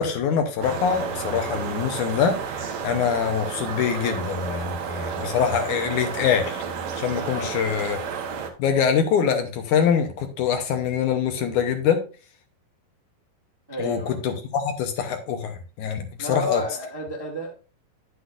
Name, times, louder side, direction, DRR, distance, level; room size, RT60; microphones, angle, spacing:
voice 1, 0.0-6.6 7.0-8.0 8.6-12.0 13.8-16.6, left 7 dB, 70° left, 6 dB, 2.2 m, -24 dB
sound 1, 0.6-8.5, right 6 dB, 65° right, 2.0 m, -31 dB
voice 2, 7.2-7.5 13.7-14.2 16.2-17.5, left 1 dB, 15° right, -2 dB, 0.9 m, -31 dB
9.7 x 8.0 x 2.5 m, 0.34 s
omnidirectional pair, 4.0 m